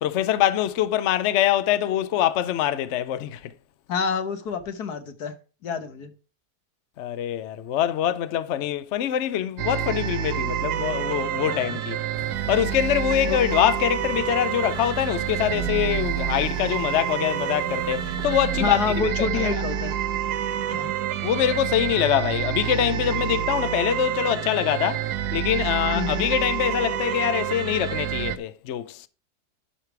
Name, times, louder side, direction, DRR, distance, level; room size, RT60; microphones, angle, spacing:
voice 1, 0.0-3.5 7.0-12.0 12.5-18.8 19.2-19.6 21.2-29.1, left 11 dB, 60° left, 0.8 m, -24 dB
voice 2, 3.9-5.3 5.6-6.1 11.5-11.8 13.3-13.4 18.5-19.9 20.7-20.9 25.9-26.3, left 5 dB, 75° left, 1.7 m, -28 dB
sound 1, 9.6-28.4, right 10 dB, 85° right, 1.3 m, -28 dB
sound 2, 12.1-19.0, left 2 dB, 30° left, 1.2 m, -43 dB
11.5 x 5.0 x 4.6 m
omnidirectional pair, 1.7 m